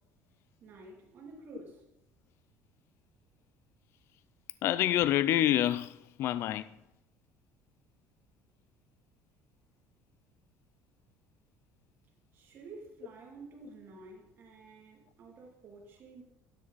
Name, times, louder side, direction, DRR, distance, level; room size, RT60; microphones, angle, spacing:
voice 1, 0.6-1.8 12.3-16.2, right 3 dB, 40° right, 2.8 m, -50 dB
voice 2, 4.6-6.7, left 12 dB, 50° left, 0.4 m, -27 dB
12.5 x 9.8 x 4.1 m
cardioid pair, 155°, 6 cm